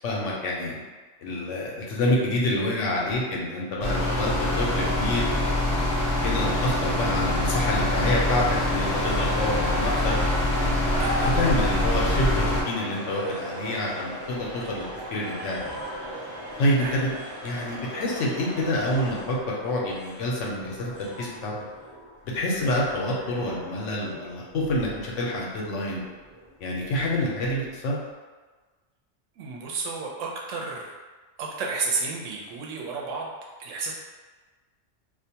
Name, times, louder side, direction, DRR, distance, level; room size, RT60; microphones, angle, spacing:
voice 1, 0.0-0.8 1.2-5.6 6.2-10.7 11.2-14.9 15.1-15.6 16.6-17.1 17.4-21.5 22.2-26.0 26.6-28.0, left 1 dB, 80° left, -3 dB, 1.0 m, -27 dB
sound 1, 3.8-12.6, left 1 dB, 60° left, 0.7 m, -24 dB
sound 2, 7.0-19.2, equal, 60° right, 0.6 m, -36 dB
voice 2, 10.8-11.4 16.8-17.0 29.4-30.9 31.4-33.3 33.6-33.9, right 4 dB, 85° right, -2 dB, 0.9 m, -32 dB
sound 3, 11.2-28.1, right 1 dB, 15° right, 0.6 m, -44 dB
2.4 x 2.2 x 2.7 m, 1.3 s
omnidirectional pair, 1.3 m